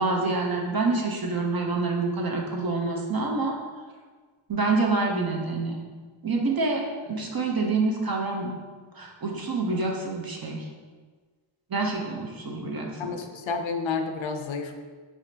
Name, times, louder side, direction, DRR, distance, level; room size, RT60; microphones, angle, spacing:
voice 1, 0.0-3.5 4.5-5.8 6.2-8.5 8.9-10.6 11.7-13.1, right 3 dB, 45° right, 0 dB, 0.7 m, -27 dB
voice 2, 13.0-14.7, left 5 dB, 70° left, 6 dB, 0.5 m, -30 dB
4.8 x 3.1 x 2.7 m, 1.4 s
wide cardioid pair, 65°, 49 cm